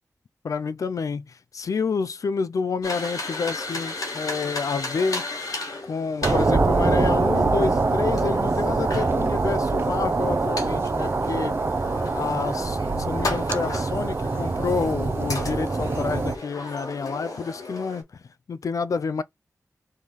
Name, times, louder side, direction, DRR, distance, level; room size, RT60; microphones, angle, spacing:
voice 1, 0.4-5.3 5.8-11.5 12.1-18.0 18.5-19.2, left 5 dB, 70° left, 0.4 m, -29 dB
sound 1, 2.8-18.0, left 2 dB, 85° left, 1.6 m, -35 dB
sound 2, 6.2-16.4, right 3 dB, 40° right, 0.6 m, -24 dB
3.6 x 3.1 x 4.0 m
wide cardioid pair, 85°, 6 cm